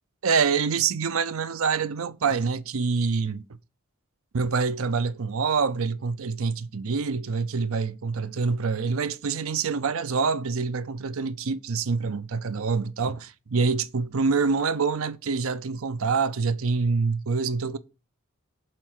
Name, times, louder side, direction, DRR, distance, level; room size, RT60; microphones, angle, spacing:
voice 1, 0.2-3.5 4.3-17.8, right 5 dB, 70° right, 0.6 m, -26 dB
7.6 x 4.6 x 6.5 m
head